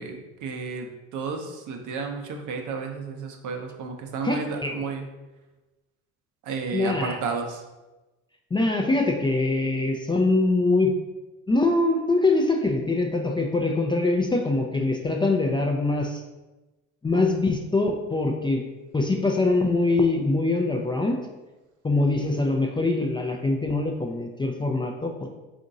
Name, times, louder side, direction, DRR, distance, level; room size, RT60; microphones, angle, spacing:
voice 1, 0.0-5.0 6.5-7.6, right 5 dB, 55° right, 4 dB, 0.7 m, -32 dB
voice 2, 4.2-4.7 6.7-7.2 8.5-10.9 11.5-16.2 17.0-18.6 18.9-21.2 21.8-25.3, left 2 dB, 15° left, 1 dB, 0.4 m, -23 dB
3.6 x 2.6 x 3.9 m, 1.1 s
hypercardioid pair, 65°, 36 cm